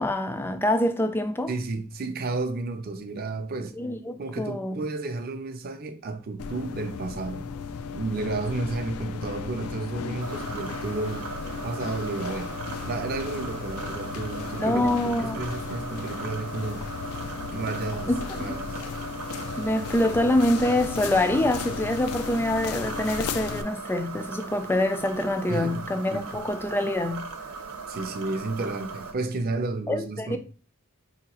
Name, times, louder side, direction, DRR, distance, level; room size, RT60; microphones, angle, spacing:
voice 1, 0.0-1.5 3.8-4.8 14.5-15.4 18.1-18.6 19.6-27.3 29.9-30.4, left 1 dB, 10° left, 0.3 m, -25 dB
voice 2, 1.5-3.8 4.2-7.5 7.9-11.3 11.6-12.6 12.8-16.9 17.3-18.1 18.4-18.8 25.5-26.5 27.9-30.4, right 3 dB, 45° right, 0.5 m, -32 dB
sound 1, 6.4-23.6, left 6 dB, 80° left, 0.4 m, -35 dB
sound 2, 10.2-29.1, right 4 dB, 80° right, 0.7 m, -38 dB
4.5 x 2.8 x 2.9 m
head